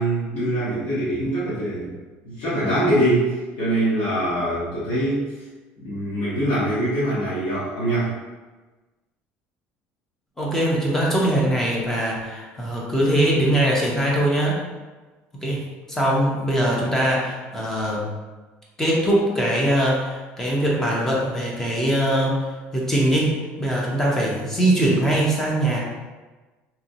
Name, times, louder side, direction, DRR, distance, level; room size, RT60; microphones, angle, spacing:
voice 1, 0.0-1.9 2.2-5.3 5.8-8.1, right 1 dB, 85° left, -11 dB, 1.0 m, -23 dB
voice 2, 10.4-14.6 15.4-15.6 15.9-18.1 18.8-22.4 22.7-25.8, right 1 dB, 10° left, -4 dB, 0.6 m, -21 dB
2.9 x 2.6 x 2.6 m, 1.2 s
cardioid pair, 165°, 5 cm